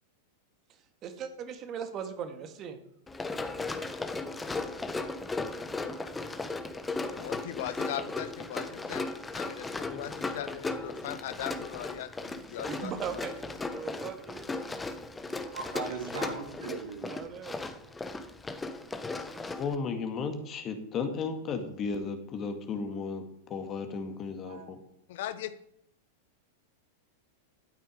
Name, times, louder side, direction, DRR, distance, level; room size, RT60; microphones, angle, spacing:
voice 1, 1.0-2.8 12.7-14.5 17.0-17.7, right 7 dB, 35° right, 7 dB, 2.0 m, -39 dB
Run, 3.1-19.8, left 3 dB, 10° left, 1.2 m, -36 dB
voice 2, 7.2-12.9 25.1-25.6, left 11 dB, 60° left, 14 dB, 0.9 m, -39 dB
voice 3, 15.5-17.4 24.4-24.7, right 4 dB, 70° right, 2 dB, 3.1 m, -39 dB
voice 4, 19.6-23.2 23.5-24.8, left 5 dB, 30° left, 6 dB, 2.1 m, -34 dB
12.5 x 9.0 x 5.1 m, 0.74 s
figure-of-eight pair, 95°, 0 cm